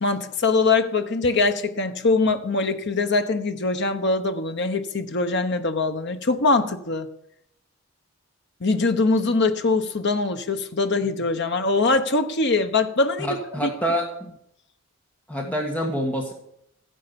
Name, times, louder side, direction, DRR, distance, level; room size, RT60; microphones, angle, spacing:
voice 1, 0.0-7.1 8.6-13.4 13.6-13.7, left 3 dB, 55° left, 1.1 m, -22 dB
voice 2, 13.2-14.1 15.3-16.3, equal, 5° left, 1.8 m, -26 dB
15.0 x 10.0 x 7.0 m
head